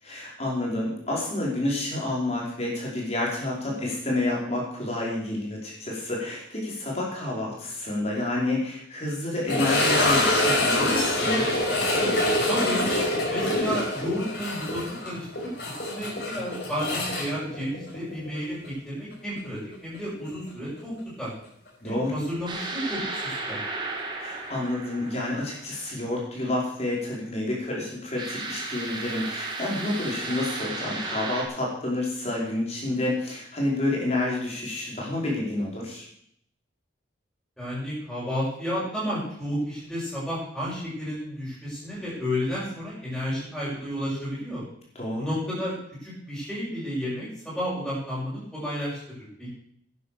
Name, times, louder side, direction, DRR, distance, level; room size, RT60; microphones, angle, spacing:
voice 1, 0.0-11.5 21.8-22.1 24.2-36.0 44.9-45.3, left 2 dB, 35° left, -3 dB, 5.1 m, -29 dB
sound 1, 9.5-18.4 18.6-18.7 19.4-19.5 22.1-22.2, left 1 dB, 55° left, 5.7 m, -25 dB
voice 2, 12.5-12.9 13.3-21.3 21.8-23.6 37.6-44.6 45.2-45.8 46.0-49.5, equal, ahead, -9 dB, 7.2 m, -32 dB
sound 2, 22.5-25.9 28.2-31.4, right 2 dB, 25° right, 2.0 m, -34 dB
11.5 x 10.5 x 6.8 m, 0.67 s
head